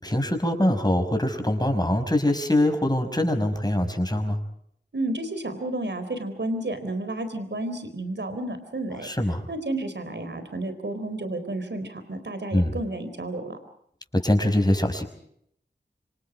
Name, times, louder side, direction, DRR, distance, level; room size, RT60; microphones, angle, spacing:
voice 1, 0.0-4.4 9.0-9.4 12.5-12.8 14.1-15.0, left 1 dB, 20° left, 6 dB, 6.0 m, -23 dB
voice 2, 4.9-9.1 9.5-13.6, right 2 dB, 80° right, 9 dB, 4.2 m, -31 dB
27.5 x 26.5 x 5.0 m, 0.70 s
wide cardioid pair, 50°, 18 cm